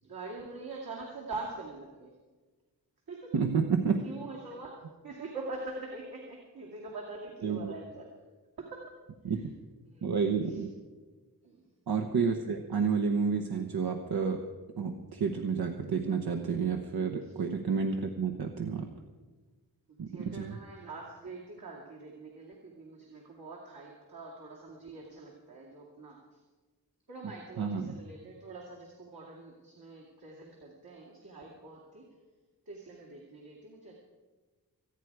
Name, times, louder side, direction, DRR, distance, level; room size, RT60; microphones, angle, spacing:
voice 1, 0.0-2.1 3.1-3.3 4.0-4.8 5.0-8.1 8.6-8.8 9.9-10.1 10.5-10.6 11.4-11.7 20.1-26.4 27.1-32.0 32.7-33.9, right 3 dB, 70° right, -3 dB, 2.4 m, -44 dB
voice 2, 3.3-4.1 7.4-7.7 9.2-9.5 10.0-10.7 11.9-14.4 14.8-18.9 20.0-20.6 27.6-28.0, right 5 dB, 85° right, 4 dB, 1.0 m, -30 dB
26.0 x 9.3 x 4.7 m, 1.3 s
wide cardioid pair, 120°, 37 cm